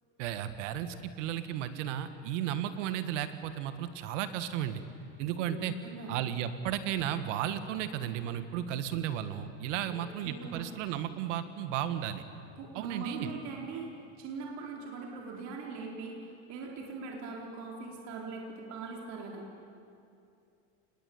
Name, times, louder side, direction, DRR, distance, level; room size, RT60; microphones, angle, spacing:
voice 1, 0.2-4.8 5.2-5.7 6.1-12.2 12.7-13.3, right 10 dB, 85° right, 10 dB, 2.0 m, -34 dB
voice 2, 5.5-6.2 10.2-10.6 12.6-13.9 14.2-19.5, right 4 dB, 50° right, -1 dB, 4.5 m, -41 dB
28.0 x 20.5 x 8.8 m, 2.5 s
cardioid pair, 150°, 35 cm